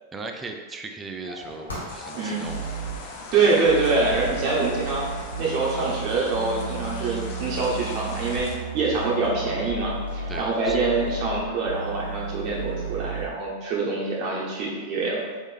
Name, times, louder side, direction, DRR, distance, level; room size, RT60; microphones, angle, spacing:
voice 1, 0.1-2.7 3.4-3.5 5.8-5.9 9.4-9.7 10.3-10.9, right 3 dB, 15° right, 4 dB, 0.4 m, -38 dB
sound 1, 1.2-11.3, left 1 dB, 75° left, 1.2 m, -42 dB
sound 2, 1.9-8.6, left 3 dB, 45° left, 0.6 m, -40 dB
voice 2, 2.1-2.5 3.3-5.0 5.4-8.5 8.7-15.4, right 3 dB, 40° right, -4 dB, 0.9 m, -25 dB
sound 3, 2.4-3.0 3.6-13.3, right 4 dB, 80° right, 0.5 m, -33 dB
4.1 x 3.5 x 3.3 m, 1.4 s
figure-of-eight pair, 90°, 0 cm